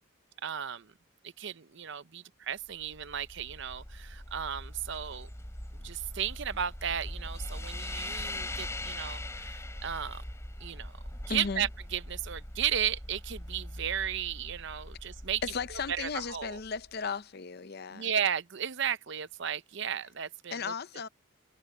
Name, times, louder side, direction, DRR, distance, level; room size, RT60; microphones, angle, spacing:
voice 1, 0.4-0.9 1.2-5.3 5.7-10.2 10.6-10.9 11.3-15.4 15.9-16.6 17.9-20.7, right 9 dB, 60° right, 0.7 m, -34 dB
sound 1, 2.7-16.9, left 1 dB, 15° left, 2.8 m, -41 dB
voice 2, 11.3-11.7 15.4-18.1 20.5-21.1, left 5 dB, 50° left, 0.6 m, -35 dB
head